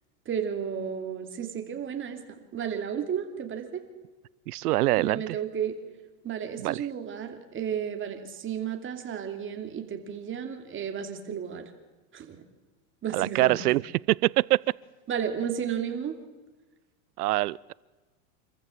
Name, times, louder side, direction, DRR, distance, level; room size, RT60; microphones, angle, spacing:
voice 1, 0.3-2.2 2.5-3.8 5.0-5.8 6.2-11.7 12.1-12.4 13.0-13.6 15.1-16.1, right 8 dB, 25° right, 5 dB, 2.8 m, -33 dB
voice 2, 4.5-5.4 6.6-6.9 13.1-14.6 17.2-17.7, right 17 dB, 85° right, 24 dB, 0.7 m, -25 dB
26.5 x 14.5 x 7.4 m, 1.2 s
supercardioid pair, 120°, 45 cm